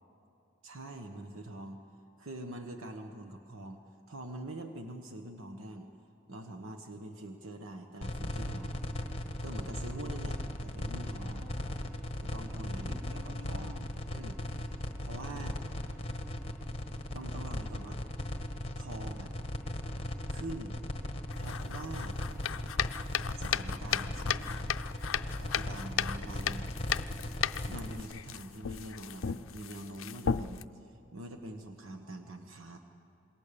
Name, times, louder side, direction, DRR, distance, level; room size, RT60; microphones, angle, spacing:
voice 1, 0.6-1.8 2.2-3.8 4.1-5.9 6.3-8.8 9.4-11.5 12.2-13.8 14.1-14.8 15.0-15.6 17.1-18.0 18.8-19.3 20.3-20.8 21.3-22.2 23.3-24.1 25.4-26.7 27.7-32.8, right 1 dB, 80° right, 5 dB, 1.3 m, -44 dB
sound 1, 8.0-28.0, left 1 dB, 30° left, 1.3 m, -37 dB
voice 2, 11.3-11.8 12.5-14.0 23.9-25.2 25.7-25.8, left 2 dB, 50° right, 0 dB, 3.0 m, -54 dB
sound 2, 21.3-30.6, left 8 dB, 75° left, 0.5 m, -36 dB
27.0 x 21.5 x 6.9 m, 2.8 s
head